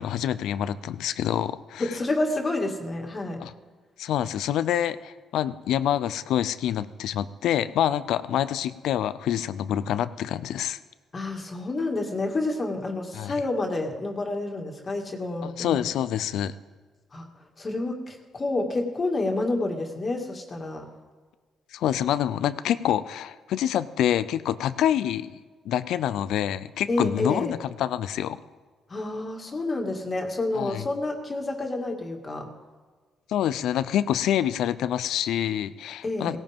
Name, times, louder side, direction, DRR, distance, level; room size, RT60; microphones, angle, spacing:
voice 1, 0.0-2.0 3.4-3.5 4.0-10.8 13.1-13.3 15.4-16.5 21.7-28.4 30.5-30.9 33.3-36.4, left 11 dB, 80° left, 15 dB, 0.5 m, -27 dB
voice 2, 1.8-3.4 11.1-15.8 17.1-17.3 17.6-20.9 26.9-27.5 28.9-32.5 36.0-36.4, left 2 dB, 35° left, 2 dB, 2.2 m, -29 dB
17.5 x 17.5 x 3.6 m, 1.4 s
cardioid pair, 90°, 0 cm